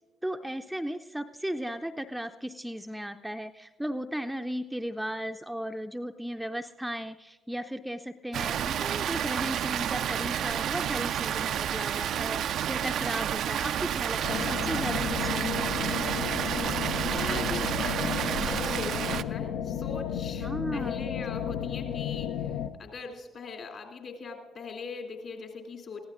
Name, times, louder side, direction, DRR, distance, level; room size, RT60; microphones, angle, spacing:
voice 1, 0.2-16.0 20.4-21.1, equal, 5° right, 6 dB, 0.5 m, -36 dB
Water, 8.3-19.2, right 10 dB, 55° right, 0.4 m, -30 dB
sound 1, 14.2-22.7, left 8 dB, 65° left, 0.5 m, -33 dB
voice 2, 17.1-26.0, left 4 dB, 50° left, 1 dB, 2.8 m, -40 dB
22.5 x 15.5 x 2.5 m, 1.3 s
figure-of-eight pair, 45°, 0 cm